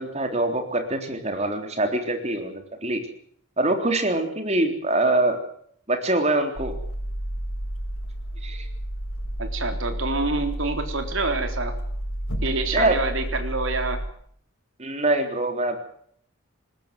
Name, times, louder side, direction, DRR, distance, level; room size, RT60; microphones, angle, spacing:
voice 1, 0.0-3.0 3.6-5.4 5.9-6.7 8.4-8.7 12.7-13.0 14.8-15.8, right 2 dB, 30° right, 5 dB, 3.7 m, -24 dB
sound 1, 6.5-14.1, right 1 dB, 85° left, 6.2 m, -31 dB
voice 2, 9.4-11.8 12.4-14.0, right 3 dB, 65° right, 7 dB, 3.7 m, -27 dB
20.5 x 20.0 x 7.8 m, 0.63 s
head